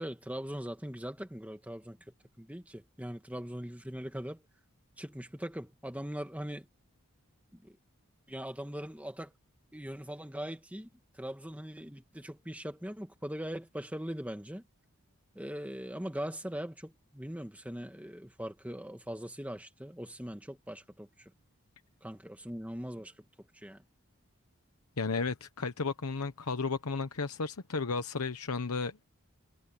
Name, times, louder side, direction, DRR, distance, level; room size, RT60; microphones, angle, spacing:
voice 1, 0.0-2.0 2.4-4.4 5.0-6.7 7.6-7.7 8.3-9.3 9.7-10.9 11.2-14.6 15.4-21.1 22.0-23.1 23.6-23.8, equal, 5° right, 2.2 m, -40 dB
voice 2, 25.0-29.0, left 4 dB, 85° left, 1.0 m, -33 dB
head